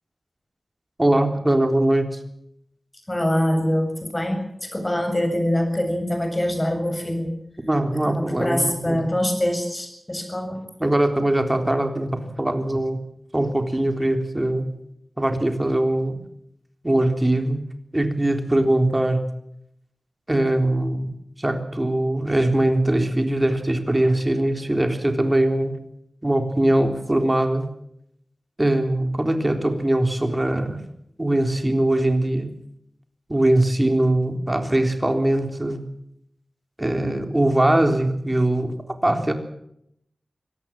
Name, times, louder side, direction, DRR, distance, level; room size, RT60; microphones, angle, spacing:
voice 1, 1.0-2.1 7.7-9.1 10.8-13.0 13.3-14.7 15.2-16.2 16.8-17.6 17.9-19.2 20.3-21.1 21.4-25.8 26.2-27.7 28.6-30.8 31.2-32.5 33.3-35.8 36.8-38.7 39.0-39.3, right 1 dB, 20° right, 6 dB, 3.8 m, -21 dB
voice 2, 3.1-7.4 8.0-10.6, left 1 dB, 20° left, 5 dB, 7.6 m, -24 dB
25.0 x 18.5 x 7.6 m, 0.75 s
wide cardioid pair, 95°, 0 cm